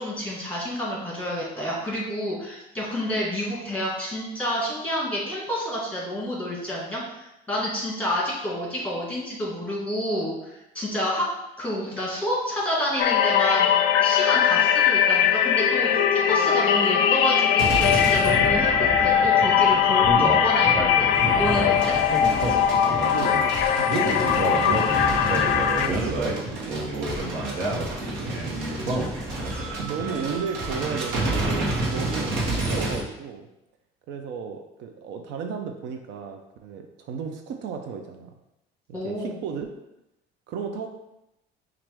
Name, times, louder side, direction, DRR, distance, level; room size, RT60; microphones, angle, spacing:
voice 1, 0.0-11.2 11.6-21.1 21.4-22.0 38.9-39.3, equal, 5° left, -5 dB, 1.6 m, -29 dB
sound 1, 13.0-25.9, left 9 dB, 85° left, 0.4 m, -20 dB
sound 2, 17.6-33.0, right 2 dB, 90° right, 1.1 m, -28 dB
voice 2, 22.7-24.8 25.3-28.6 29.4-33.5 34.1-38.3 39.0-39.7 40.5-40.9, right 6 dB, 70° right, 4 dB, 0.6 m, -34 dB
6.0 x 2.5 x 3.4 m, 0.89 s
cardioid pair, 135°, 19 cm